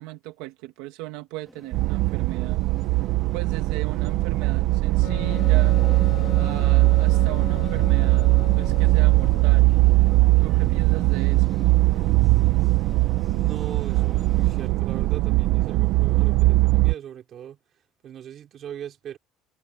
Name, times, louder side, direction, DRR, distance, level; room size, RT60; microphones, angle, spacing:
voice 1, 0.0-2.6 3.3-5.8 6.3-9.7 10.4-11.5, right 18 dB, 85° right, 1.5 m, -38 dB
sound 1, 1.4-14.7, equal, ahead, 1.7 m, -43 dB
sound 2, 1.7-16.9, right 19 dB, 60° right, 0.7 m, -20 dB
Wind instrument woodwind instrument, 5.0-9.7, left 19 dB, 80° left, 3.4 m, -39 dB
voice 2, 13.3-17.6 18.0-19.2, right 10 dB, 35° right, 4.1 m, -39 dB
cardioid pair, 170°, 0 cm